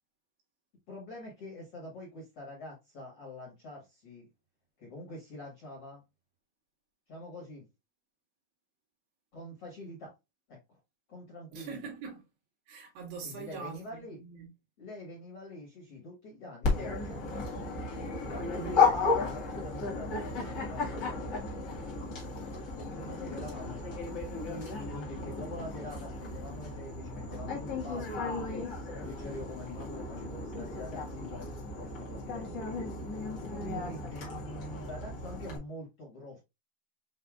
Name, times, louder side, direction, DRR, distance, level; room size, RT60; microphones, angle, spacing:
voice 1, 0.9-4.3 4.8-6.0 7.1-7.7 9.3-10.1 10.5-10.8 11.1-11.8 13.2-14.2 14.8-17.5 18.2-20.1 20.5-21.9 22.7-31.5 31.8-32.7 33.4-36.4, left 2 dB, 55° left, 1.7 m, -45 dB
voice 2, 11.5-12.2 12.7-14.5 18.6-18.8 33.6-34.0, right 6 dB, 80° right, 3.8 m, -43 dB
Dog, 16.6-35.6, left 4 dB, 85° left, 0.9 m, -34 dB
7.5 x 2.7 x 2.4 m
omnidirectional pair, 4.6 m